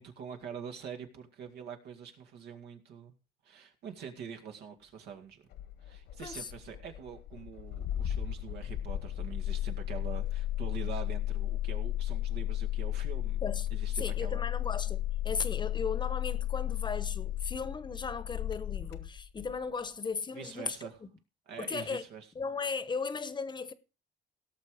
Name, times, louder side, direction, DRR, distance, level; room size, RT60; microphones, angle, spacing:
voice 1, 0.0-3.1 3.4-5.4 5.8-13.4 13.7-14.5 20.3-21.0 21.5-22.3, right 7 dB, 75° right, 2.3 m, -45 dB
Engine starting, 5.5-19.6, left 12 dB, 85° left, 1.5 m, -34 dB
voice 2, 14.0-20.9 21.6-22.0 22.3-23.7, left 5 dB, 25° left, 1.0 m, -36 dB
17.0 x 6.7 x 5.0 m
cardioid pair, 110°, 17 cm